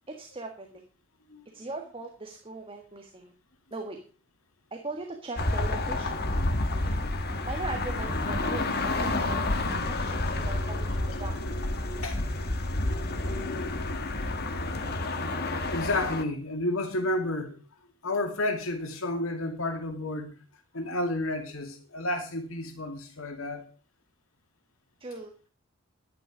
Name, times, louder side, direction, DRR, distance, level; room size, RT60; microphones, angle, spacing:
voice 1, 0.1-0.7 1.5-3.3 3.7-4.0 4.7-6.3 6.7-6.9 7.2-11.4 25.0-25.3, right 3 dB, 25° right, 1.7 m, -40 dB
sound 1, 5.4-16.2, left 2 dB, 50° left, 1.6 m, -29 dB
voice 2, 15.7-17.6 18.0-20.4 20.7-23.7, left 1 dB, 80° left, 2.4 m, -31 dB
12.0 x 10.5 x 5.1 m
head